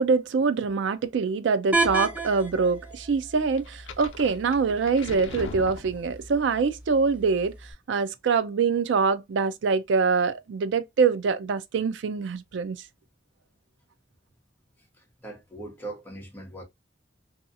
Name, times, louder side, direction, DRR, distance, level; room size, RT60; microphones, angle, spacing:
voice 1, 0.0-7.5 7.9-12.8, right 5 dB, 65° right, 0.4 m, -24 dB
sound 1, 1.7-7.7, right 2 dB, 10° right, 0.5 m, -34 dB
sound 2, 3.6-6.4, left 3 dB, 80° left, 0.6 m, -40 dB
voice 2, 15.0-16.6, right 2 dB, 10° left, 0.9 m, -40 dB
2.7 x 2.3 x 2.5 m
head